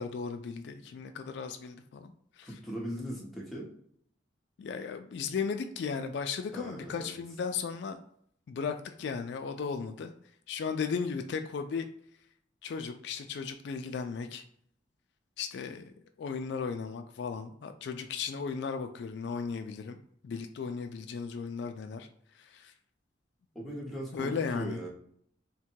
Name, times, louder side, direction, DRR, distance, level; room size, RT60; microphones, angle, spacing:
voice 1, 0.0-2.1 2.4-2.5 4.6-8.0 8.5-10.1 10.5-11.9 12.6-14.4 15.4-15.9 16.2-20.0 20.2-22.1 22.4-22.7 24.1-24.8, left 5 dB, 60° left, 6 dB, 0.3 m, -36 dB
voice 2, 2.4-3.7 6.5-7.1 23.5-24.9, equal, ahead, -4 dB, 0.8 m, -39 dB
3.6 x 2.2 x 4.4 m, 0.66 s
head